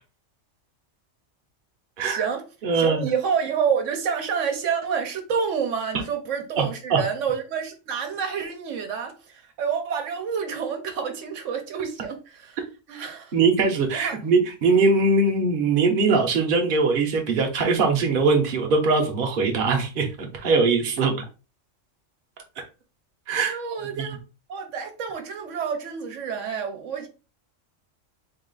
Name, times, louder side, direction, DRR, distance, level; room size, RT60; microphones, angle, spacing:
voice 1, 2.0-2.4 2.8-12.6 12.9-13.3 13.9-14.2 23.5-24.2 24.5-27.1, right 6 dB, 85° right, 1.1 m, -28 dB
voice 2, 2.6-3.1 6.6-7.0 13.3-21.2 22.6-22.7 23.3-23.6 24.0-24.1, right 4 dB, 50° right, 0.9 m, -21 dB
3.8 x 2.4 x 3.8 m
omnidirectional pair, 1.3 m